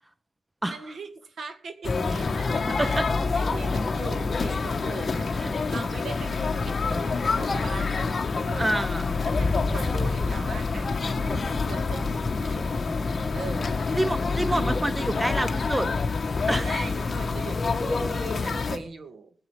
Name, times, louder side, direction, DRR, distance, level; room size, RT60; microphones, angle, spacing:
voice 1, 0.7-5.3 5.7-7.9 8.4-8.8 9.3-12.9 13.3-13.9 16.5-19.3, right 4 dB, 75° right, 8 dB, 2.0 m, -40 dB
sound 1, 1.8-18.8, left 4 dB, 45° left, 1.5 m, -27 dB
voice 2, 2.7-3.1 5.4-5.5 8.6-9.2 13.9-15.9 16.5-16.7, right 1 dB, 15° right, 12 dB, 0.9 m, -27 dB
sound 2, 9.3-13.6 13.8-13.9, left 3 dB, 25° left, 1.1 m, -32 dB
20.5 x 7.8 x 5.1 m, 0.42 s
wide cardioid pair, 120°, 0 cm